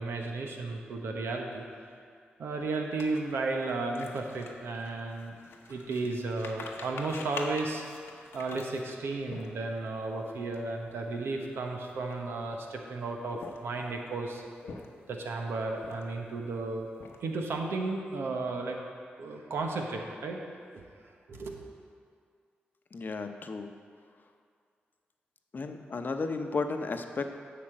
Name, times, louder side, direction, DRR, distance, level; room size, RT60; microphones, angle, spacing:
voice 1, 0.0-1.6 2.4-5.4 5.7-7.9 8.3-14.4 15.1-16.9 17.2-18.8 19.2-20.4 21.3-21.6, right 3 dB, 80° right, 2 dB, 1.1 m, -34 dB
sound 1, 3.0-9.9 10.4-10.6 10.8-11.1 11.7-12.6 13.2-13.9 14.4-15.2 15.7-16.3 16.7-17.5, left 4 dB, 80° left, 0.9 m, -45 dB
voice 2, 22.9-23.7 25.5-27.3, left 4 dB, 50° left, 6 dB, 0.8 m, -33 dB
8.6 x 5.1 x 7.6 m, 2.2 s
cardioid pair, 50°, 4 cm